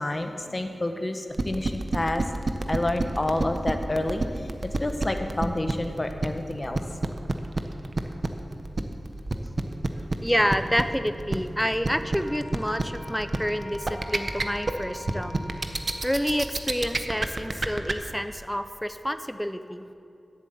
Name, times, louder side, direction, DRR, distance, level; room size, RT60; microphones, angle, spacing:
voice 1, 0.0-2.2 2.7-6.8, left 1 dB, 25° left, 6 dB, 0.9 m, -29 dB
sound 1, 1.3-17.9, right 2 dB, 40° right, 0.8 m, -27 dB
voice 2, 10.2-15.4 16.0-19.8, equal, 5° left, 10 dB, 0.5 m, -28 dB
Wind instrument woodwind instrument, 12.2-16.5, equal, 70° left, 2.5 m, -43 dB
11.5 x 7.7 x 8.4 m, 2.5 s
wide cardioid pair, 115°, 0 cm